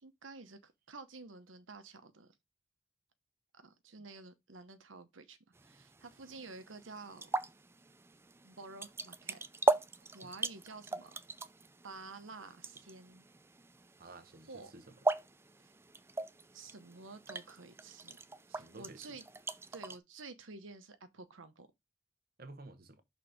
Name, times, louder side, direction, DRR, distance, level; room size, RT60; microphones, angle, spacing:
voice 1, 0.0-2.3 3.6-7.3 8.4-9.4 10.0-11.1 11.8-13.2 14.5-14.7 15.6-15.7 16.5-18.2 18.5-19.2 19.7-21.7, right 3 dB, 90° right, 1.0 m, -51 dB
sound 1, 5.6-20.0, right 2 dB, 15° right, 0.4 m, -39 dB
voice 2, 14.0-14.9 18.5-19.2 22.4-23.0, right 2 dB, 50° right, 1.0 m, -52 dB
6.2 x 4.0 x 4.9 m
head